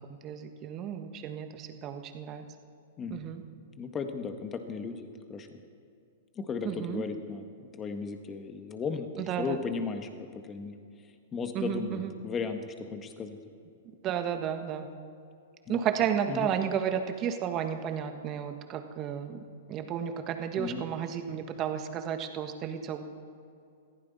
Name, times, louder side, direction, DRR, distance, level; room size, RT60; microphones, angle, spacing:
voice 1, 0.1-2.4 3.1-3.4 6.6-7.0 9.2-9.6 11.5-12.1 14.0-14.9 15.7-19.4 19.7-23.0, right 9 dB, 35° right, 7 dB, 1.5 m, -32 dB
voice 2, 3.8-5.6 6.4-9.1 9.4-10.8 11.3-13.4 15.7-15.8 16.3-16.5 20.6-20.8, left 5 dB, 25° left, 6 dB, 1.6 m, -36 dB
21.5 x 15.0 x 4.2 m, 2.5 s
hypercardioid pair, 120°, 0 cm